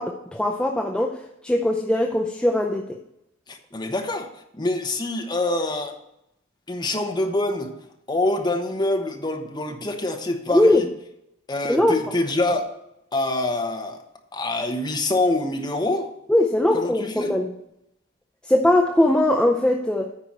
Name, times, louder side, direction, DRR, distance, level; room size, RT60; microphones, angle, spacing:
voice 1, 0.0-3.0 10.5-10.8 11.7-11.9 16.3-17.5 18.4-20.1, left 1 dB, 5° left, 0 dB, 0.5 m, -20 dB
voice 2, 3.5-4.3 4.5-5.9 6.7-7.7 8.1-10.8 11.5-12.7 13.1-14.0 14.3-16.1 16.7-17.3, left 2 dB, 20° left, 3 dB, 1.1 m, -25 dB
9.8 x 4.6 x 7.5 m, 0.81 s
head